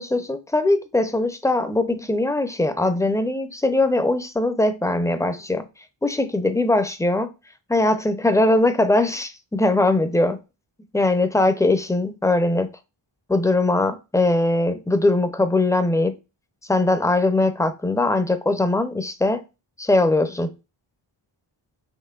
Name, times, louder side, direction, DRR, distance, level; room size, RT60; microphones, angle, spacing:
voice 1, 0.0-5.7 6.0-7.3 7.7-10.4 10.9-12.7 13.3-16.1 16.7-19.4 19.8-20.5, left 2 dB, 5° left, 0.5 m, -21 dB
5.7 x 3.0 x 2.3 m
wide cardioid pair, 70°, 49 cm